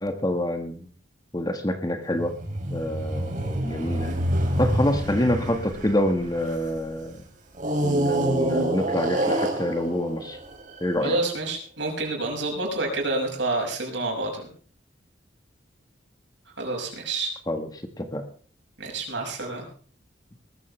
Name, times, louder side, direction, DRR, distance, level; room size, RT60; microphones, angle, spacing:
voice 1, 0.0-0.9 1.3-2.3 2.7-4.1 4.6-7.3 7.8-10.4 10.8-11.2 17.5-17.7 18.0-18.2, left 1 dB, 20° left, 7 dB, 1.6 m, -26 dB
sound 1, 2.1-6.8 7.6-11.0, right 1 dB, 40° right, 3.5 m, -27 dB
voice 2, 11.0-14.5 16.6-17.3 18.8-19.7, right 2 dB, 70° right, 1 dB, 6.3 m, -28 dB
20.0 x 14.5 x 3.3 m, 0.43 s
head